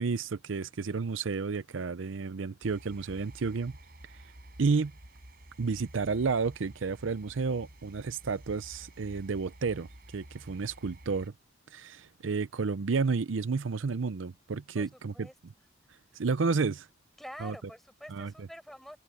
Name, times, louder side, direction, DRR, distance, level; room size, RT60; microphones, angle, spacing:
voice 1, 0.0-3.7 4.6-4.9 5.6-9.9 10.1-11.3 11.7-15.3 16.1-16.9 17.4-17.5 18.1-18.5, right 4 dB, 80° right, 0.6 m, -31 dB
sound 1, 2.6-11.3, right 1 dB, 50° right, 5.6 m, -51 dB
voice 2, 14.7-15.4 17.2-19.0, equal, ahead, 4.9 m, -47 dB
head